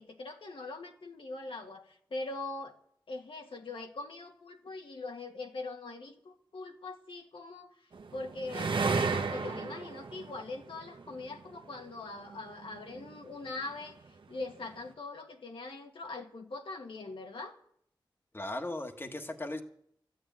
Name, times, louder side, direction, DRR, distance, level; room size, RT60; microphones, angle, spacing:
voice 1, 0.0-2.8 3.1-8.8 9.1-17.6, left 3 dB, 80° left, 2 dB, 1.7 m, -42 dB
sound 1, 7.9-11.5 12.3-13.2, right 4 dB, 70° right, 1.1 m, -33 dB
voice 2, 18.3-19.6, left 1 dB, 25° left, 5 dB, 1.3 m, -37 dB
13.0 x 9.2 x 9.1 m, 0.70 s
wide cardioid pair, 85°, 9 cm